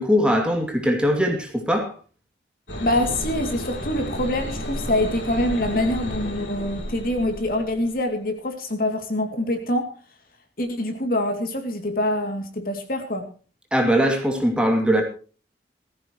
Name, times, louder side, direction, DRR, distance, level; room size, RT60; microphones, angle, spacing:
voice 1, 0.0-1.9 13.7-15.0, equal, 5° right, 2.5 m, -21 dB
sound 1, 2.7-8.0, equal, 80° left, 3.2 m, -32 dB
voice 2, 2.8-9.9 10.6-13.3, left 1 dB, 50° left, 2.7 m, -25 dB
18.5 x 15.0 x 3.1 m
head